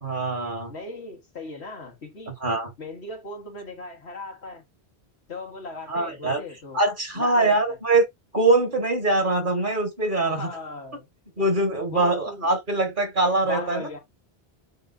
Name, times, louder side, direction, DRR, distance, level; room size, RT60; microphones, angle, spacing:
voice 1, 0.0-0.7 2.4-2.7 5.9-6.4 6.7-8.1 8.3-10.5 11.4-14.0, right 2 dB, 50° right, 2.4 m, -23 dB
voice 2, 0.7-2.3 2.8-4.7 5.3-6.8 7.2-7.8 10.2-11.1 11.9-12.5 13.4-14.0, left 2 dB, 90° left, 2.1 m, -37 dB
9.1 x 4.0 x 2.8 m
omnidirectional pair, 1.1 m